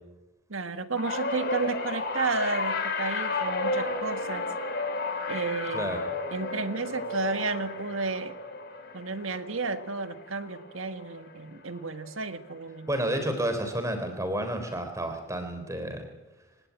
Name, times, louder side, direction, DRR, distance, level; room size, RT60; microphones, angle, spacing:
voice 1, 0.5-4.4 5.3-5.9 6.3-8.3 8.9-12.9, right 3 dB, 80° right, 9 dB, 1.7 m, -32 dB
sound 1, 1.0-11.4 11.7-12.2 13.3-13.4, left 3 dB, 50° left, 3.4 m, -33 dB
voice 2, 5.7-6.0 12.9-16.1, right 1 dB, 15° right, 7 dB, 4.0 m, -30 dB
24.5 x 18.0 x 8.7 m, 1.1 s
head